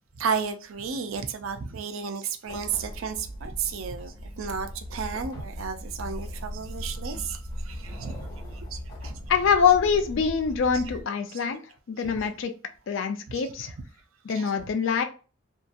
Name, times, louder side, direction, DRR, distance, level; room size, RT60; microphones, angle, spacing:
voice 1, 0.1-9.2 10.7-10.8 11.3-11.5 12.1-12.2 13.3-13.5 14.3-14.6, right 6 dB, 90° right, 0.5 m, -33 dB
sound 1, 2.5-11.0, equal, 50° left, 1.1 m, -38 dB
voice 2, 9.3-11.6 11.9-12.5 12.9-13.7 14.3-15.0, left 6 dB, 70° left, 0.4 m, -24 dB
2.7 x 2.5 x 2.3 m
head